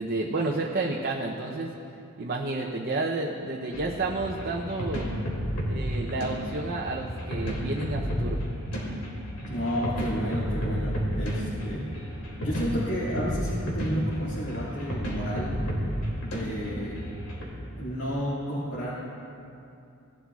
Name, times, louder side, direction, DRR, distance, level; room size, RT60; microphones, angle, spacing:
voice 1, 0.0-1.7 2.2-5.1 5.7-8.4, right 2 dB, 45° right, -1 dB, 0.7 m, -30 dB
sound 1, 3.7-17.4, equal, 85° left, 2.5 m, -32 dB
voice 2, 9.4-12.0 12.4-15.6 16.2-17.1 17.8-18.9, equal, 55° left, -9 dB, 2.2 m, -31 dB
18.0 x 11.5 x 2.4 m, 2.7 s
head